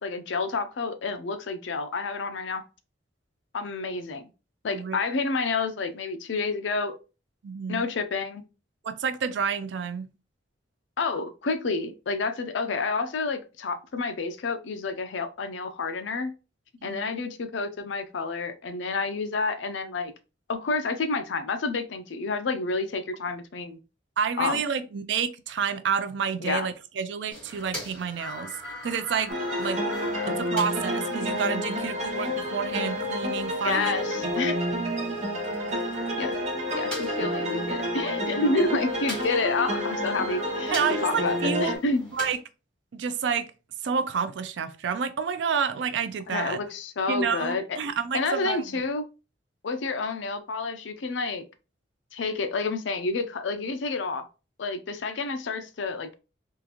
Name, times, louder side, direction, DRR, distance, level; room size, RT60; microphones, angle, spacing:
voice 1, 0.0-2.6 3.5-4.3 4.6-6.9 7.7-8.5 11.0-16.3 16.8-20.1 20.5-23.8 24.4-24.6 26.4-26.7 30.2-30.4 33.6-34.6 36.2-36.4 36.7-40.8 41.0-42.1 46.3-47.8 48.1-49.0 49.6-51.4 52.1-54.3 54.6-56.2, left 3 dB, 80° left, 0.5 m, -29 dB
voice 2, 7.4-7.8 8.8-10.1 16.8-17.1 24.2-29.8 30.2-34.3 40.7-41.8 42.1-42.4 42.9-43.5 43.8-46.6 47.1-48.6, right 6 dB, 75° right, 0.4 m, -29 dB
sound 1, 27.3-42.3, left 1 dB, 5° left, 1.4 m, -42 dB
sound 2, 29.3-41.8, equal, 35° right, 0.8 m, -29 dB
3.7 x 2.4 x 2.9 m
head